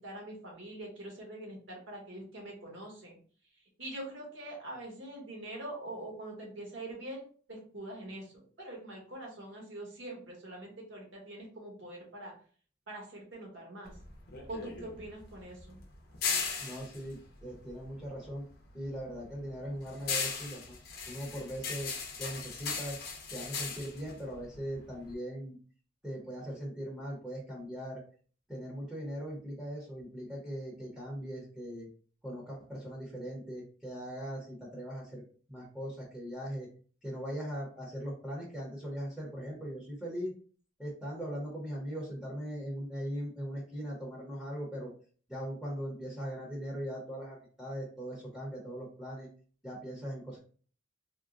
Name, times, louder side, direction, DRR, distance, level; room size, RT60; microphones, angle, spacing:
voice 1, 0.0-3.2 3.8-7.2 7.5-8.3 8.6-12.3 12.9-13.9 14.5-15.8, right 1 dB, 65° right, -2 dB, 1.3 m, -44 dB
sound 1, 13.8-18.4 18.7-25.1, left 5 dB, 55° left, 0.7 m, -38 dB
voice 2, 16.6-18.4 18.7-20.8 21.1-21.9 22.2-23.0 23.3-25.6 26.0-28.0 28.5-31.9 32.2-35.2 35.5-36.7 37.0-40.3 40.8-44.9 45.3-49.3 49.6-50.4, equal, ahead, -5 dB, 0.9 m, -40 dB
3.6 x 2.2 x 2.5 m, 0.43 s
head